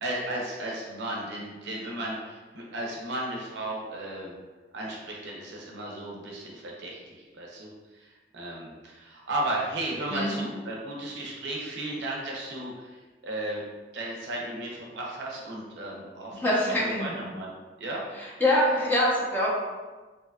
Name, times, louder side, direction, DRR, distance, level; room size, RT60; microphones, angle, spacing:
voice 1, 0.0-4.4 4.7-13.6 13.9-16.5 16.8-17.5 17.8-18.0, right 1 dB, 65° right, -2 dB, 0.5 m, -35 dB
voice 2, 16.3-17.1 18.4-19.5, left 1 dB, 10° left, -8 dB, 0.6 m, -24 dB
2.7 x 2.3 x 2.3 m, 1.3 s
head